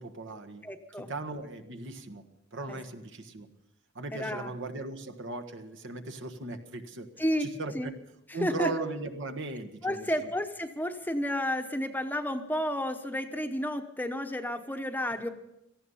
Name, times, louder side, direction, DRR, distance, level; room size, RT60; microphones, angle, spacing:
voice 1, 0.0-0.6 1.1-2.2 2.5-3.5 3.9-7.1 7.4-7.9 8.3-10.1, right 3 dB, 65° right, 7 dB, 1.4 m, -37 dB
voice 2, 0.6-1.1 2.7-2.8 4.1-4.5 7.2-7.9 8.3-8.9 9.8-15.3, left 1 dB, 10° left, 6 dB, 1.0 m, -32 dB
18.0 x 14.5 x 5.6 m, 0.84 s
head